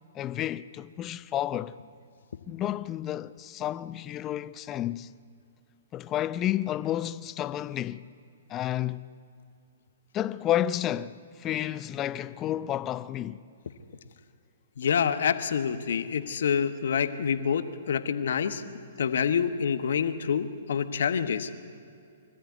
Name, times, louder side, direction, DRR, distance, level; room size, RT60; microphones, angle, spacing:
voice 1, 0.1-1.7 2.5-5.1 5.9-8.1 8.5-9.0 10.1-13.4, left 12 dB, 25° left, 0.6 m, -31 dB
voice 2, 14.8-18.6 19.0-21.5, left 7 dB, 70° left, 1.3 m, -27 dB
24.5 x 14.0 x 9.5 m
hypercardioid pair, 130°, 0 cm